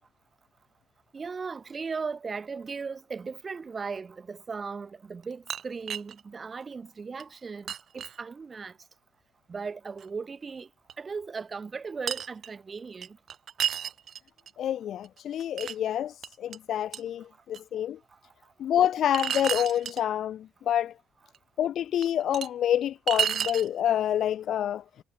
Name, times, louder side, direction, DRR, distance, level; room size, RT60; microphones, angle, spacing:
voice 1, 1.1-8.8 9.5-10.7 11.0-13.2, right 5 dB, 35° right, 4.3 m, -37 dB
sound 1, 5.2-6.2 6.7-6.8 7.2-7.3 7.7-8.2 10.0-10.1 10.9-11.0 12.1-12.5 13.0-14.5 15.0-15.8 16.2-16.6 16.9-17.0 17.5-17.6 19.1-20.0 21.3-21.4 22.0-22.5 23.1-23.7, right 9 dB, 60° right, 2.7 m, -31 dB
voice 2, 14.6-18.0 18.6-20.9 21.6-24.8, left 10 dB, 70° left, 1.2 m, -27 dB
cardioid pair, 90°, 0 cm